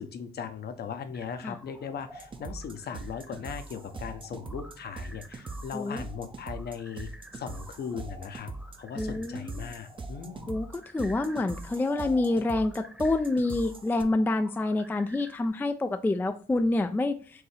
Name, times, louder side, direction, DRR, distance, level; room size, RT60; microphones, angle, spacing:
voice 1, 0.0-8.5 8.8-10.5, left 7 dB, 55° left, 8 dB, 0.7 m, -38 dB
sound 1, 1.1-15.5, equal, 5° right, 0.9 m, -51 dB
sound 2, 2.2-14.0, right 3 dB, 25° right, 0.6 m, -41 dB
voice 2, 9.0-9.7 10.5-17.4, left 2 dB, 10° left, 8 dB, 0.3 m, -27 dB
4.6 x 2.7 x 3.2 m, 0.42 s
cardioid pair, 90°, 20 cm